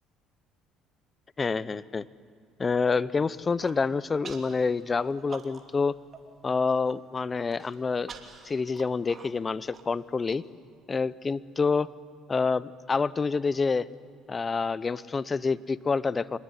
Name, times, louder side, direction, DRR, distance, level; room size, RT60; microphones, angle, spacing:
voice 1, 1.4-2.1 2.6-6.0 6.4-8.1 8.4-10.4 10.9-11.9 12.3-13.9 14.3-16.4, left 4 dB, 30° left, 18 dB, 0.8 m, -27 dB
Human voice, 3.4-3.8 4.2-4.6 4.9-5.8 6.1-6.2 6.6-7.0 7.5-10.4, right 5 dB, 40° right, 2.8 m, -46 dB
25.0 x 20.5 x 9.7 m, 2.3 s
supercardioid pair, 80°, 0 cm